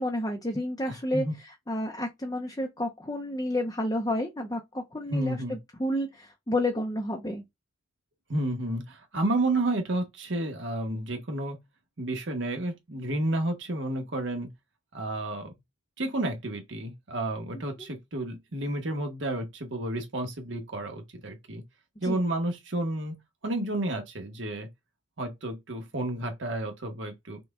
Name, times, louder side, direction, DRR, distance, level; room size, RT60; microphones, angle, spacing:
voice 1, 0.0-1.2 1.7-7.4 22.0-22.2, left 1 dB, 20° left, 0.6 m, -30 dB
voice 2, 0.9-1.3 5.1-5.6 8.3-11.6 12.0-14.5 14.9-15.5 16.0-21.6 22.0-23.1 23.4-24.7 25.2-27.4, right 1 dB, 75° right, 1.1 m, -31 dB
5.9 x 2.2 x 3.5 m
head